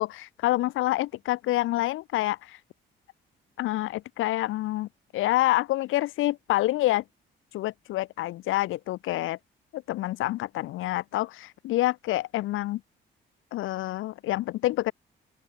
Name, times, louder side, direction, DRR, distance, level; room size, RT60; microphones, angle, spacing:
voice 1, 0.0-2.6 3.6-4.9 5.1-7.0 7.5-9.4 9.7-12.8 13.5-14.9, left 16 dB, 85° left, 1.3 m, -27 dB
open air
cardioid pair, 90°, 20 cm